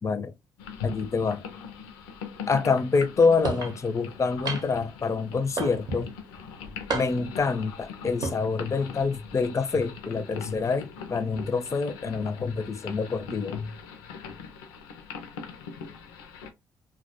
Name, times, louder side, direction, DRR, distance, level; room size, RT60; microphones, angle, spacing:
voice 1, 0.0-0.3 0.8-1.4 2.5-6.1 6.9-13.6, left 4 dB, 35° left, 0.5 m, -26 dB
sound 1, 0.6-16.5, left 6 dB, 90° left, 0.4 m, -40 dB
sound 2, 3.4-3.7 4.5-4.9 5.6-6.1 6.9-7.4 8.1-8.4, right 3 dB, 50° right, 0.7 m, -31 dB
2.2 x 2.1 x 2.7 m
hypercardioid pair, 50°, 9 cm